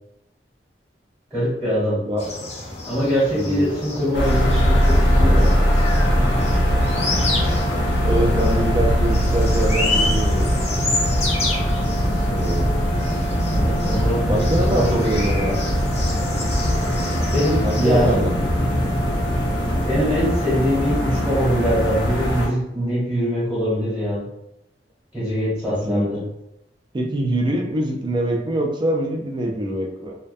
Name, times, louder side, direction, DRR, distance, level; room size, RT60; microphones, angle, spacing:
voice 1, 1.3-2.0 2.9-5.8 13.5-15.5 17.3-18.3 19.7-24.2 25.1-26.2, equal, ahead, -9 dB, 0.9 m, -23 dB
sound 1, 2.2-18.1, left 2 dB, 40° left, 0.5 m, -30 dB
voice 2, 3.3-3.8 8.0-10.4 12.3-12.7 14.3-15.5 17.6-18.3 25.7-26.1 26.9-30.2, right 1 dB, 25° right, 2 dB, 0.4 m, -24 dB
sound 2, 4.1-22.5, equal, 80° left, 0.6 m, -21 dB
sound 3, 6.0-17.7, equal, 85° right, 0.8 m, -32 dB
2.3 x 2.1 x 2.5 m, 0.85 s
head